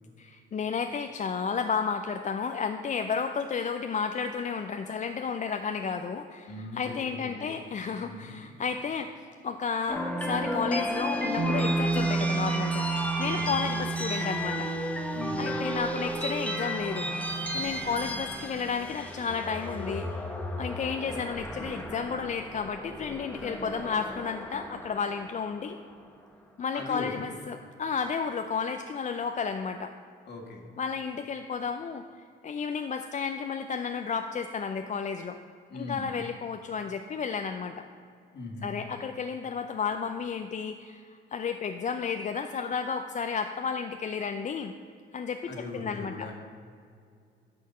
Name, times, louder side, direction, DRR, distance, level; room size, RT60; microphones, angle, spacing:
voice 1, 0.2-12.9 13.2-14.7 15.4-17.1 17.5-20.2 20.6-25.8 26.6-29.9 30.8-32.0 32.4-35.4 35.7-37.8 38.6-44.7 45.1-46.3, left 6 dB, 40° left, 6 dB, 0.5 m, -32 dB
voice 2, 6.5-7.0 7.2-7.5 8.0-8.5 13.3-13.6 15.1-15.6 17.7-18.1 26.7-27.3 30.3-30.7 35.7-36.1 38.3-38.7 45.5-46.3, left 3 dB, 55° left, 2 dB, 1.8 m, -40 dB
sound 1, 9.9-26.1, left 1 dB, 5° left, 1.0 m, -34 dB
Bass guitar, 11.4-17.6, right 5 dB, 60° right, 0.8 m, -32 dB
9.9 x 5.7 x 5.4 m, 2.3 s
cardioid pair, 90°, 20 cm